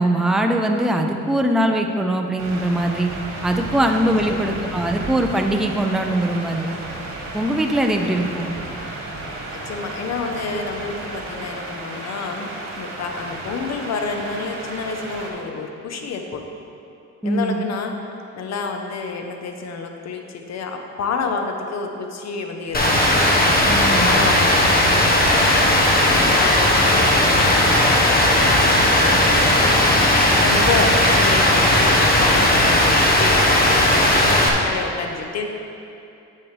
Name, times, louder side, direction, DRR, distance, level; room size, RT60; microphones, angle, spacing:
voice 1, 0.0-3.1 3.4-6.8 7.3-8.5 17.2-17.6 23.6-24.1, right 1 dB, ahead, 3 dB, 0.6 m, -21 dB
sound 1, 2.4-15.3, right 2 dB, 65° right, 2.1 m, -33 dB
voice 2, 9.5-12.5 12.7-16.5 17.2-17.9 18.4-23.5 24.0-25.7 26.0-29.9 30.2-35.5, left 4 dB, 60° left, 4 dB, 1.0 m, -29 dB
sound 2, 22.7-34.3, left 1 dB, 90° left, 1.7 m, -35 dB
Rain, 22.7-34.5, left 1 dB, 30° left, 1.2 m, -16 dB
9.7 x 7.7 x 3.3 m, 2.7 s
cardioid pair, 90°, 30 cm